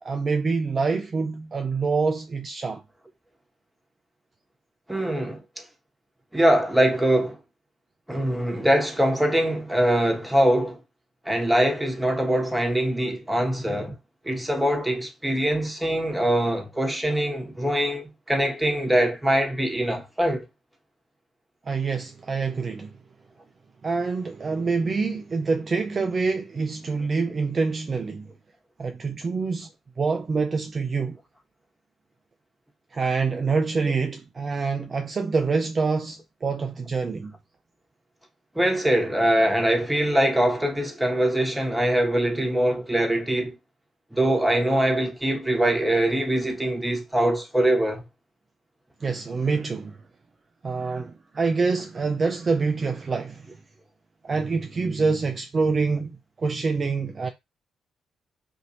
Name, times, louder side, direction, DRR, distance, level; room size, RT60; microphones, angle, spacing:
voice 1, 0.0-2.8 21.7-23.0 23.8-28.3 28.8-29.7 30.0-31.2 32.9-37.3 49.0-50.0 50.6-53.5 54.2-56.1 56.4-57.3, right 4 dB, 40° right, 0.4 m, -26 dB
voice 2, 4.9-5.4 6.3-7.4 8.1-10.8 11.2-13.9 14.2-20.4 33.8-33.9 38.5-43.6 44.1-48.0, right 1 dB, 10° right, 1.2 m, -23 dB
2.7 x 2.6 x 2.7 m
figure-of-eight pair, 40°, 0 cm